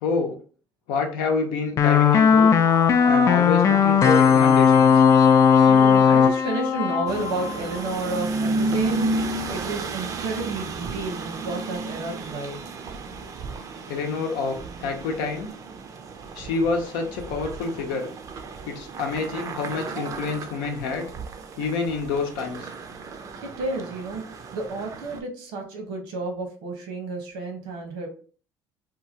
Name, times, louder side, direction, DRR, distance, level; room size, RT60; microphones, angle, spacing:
voice 1, 0.0-0.4 0.9-2.5 3.1-5.0 13.9-15.5 16.3-18.1 18.7-21.1 21.6-22.7, left 4 dB, 90° left, 3 dB, 0.7 m, -27 dB
sound 1, 1.8-7.9, left 7 dB, 40° left, 0.4 m, -17 dB
voice 2, 5.6-12.6 23.4-28.1, right 2 dB, 85° right, 3 dB, 1.0 m, -31 dB
sound 2, 7.1-25.2, right 3 dB, 45° right, 0.4 m, -33 dB
2.9 x 2.3 x 2.7 m, 0.41 s
cardioid pair, 110°, 8 cm